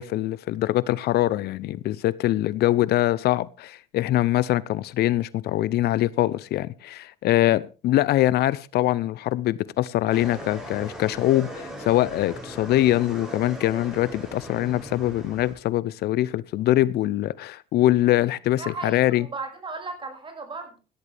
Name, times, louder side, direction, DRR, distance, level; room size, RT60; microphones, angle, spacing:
voice 1, 0.0-19.3, left 14 dB, 70° left, 0.7 m, -23 dB
sound 1, 10.1-15.5, equal, 5° right, 7.4 m, -38 dB
voice 2, 18.6-20.8, right 3 dB, 30° right, 6.2 m, -35 dB
17.0 x 12.5 x 3.4 m
cardioid pair, 110°, 17 cm